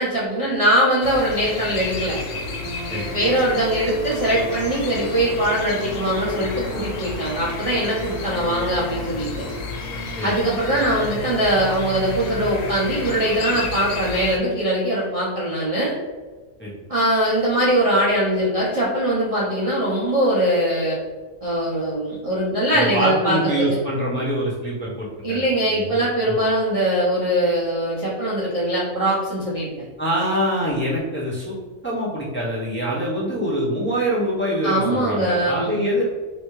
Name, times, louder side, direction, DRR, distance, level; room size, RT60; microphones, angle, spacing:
voice 1, 0.0-2.2 3.1-9.4 10.2-16.0 16.9-21.0 21.4-23.8 25.2-29.7 34.6-35.8, right 1 dB, 40° right, -7 dB, 0.5 m, -21 dB
sound 1, 1.0-14.4, left 4 dB, 75° left, 1.0 m, -32 dB
sound 2, 1.3-13.6, right 2 dB, 90° right, 1.1 m, -35 dB
voice 2, 22.7-26.0 30.0-31.5 31.8-36.0, equal, 10° left, -7 dB, 0.6 m, -24 dB
3.3 x 2.7 x 3.0 m, 1.3 s
omnidirectional pair, 1.4 m